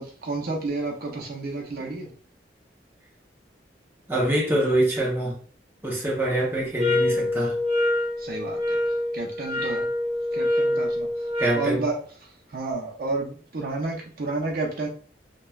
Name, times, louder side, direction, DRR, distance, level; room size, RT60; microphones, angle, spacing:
voice 1, 0.0-2.1 8.2-8.6 9.1-9.9 10.3-11.1 11.5-11.9 12.5-14.9, right 3 dB, 55° right, 0.5 m, -30 dB
voice 2, 4.1-5.4 5.8-7.6 11.4-11.9, right 1 dB, 10° right, 0.6 m, -24 dB
sound 1, 6.8-11.7, left 1 dB, 35° right, 1.0 m, -25 dB
3.0 x 2.1 x 2.3 m
head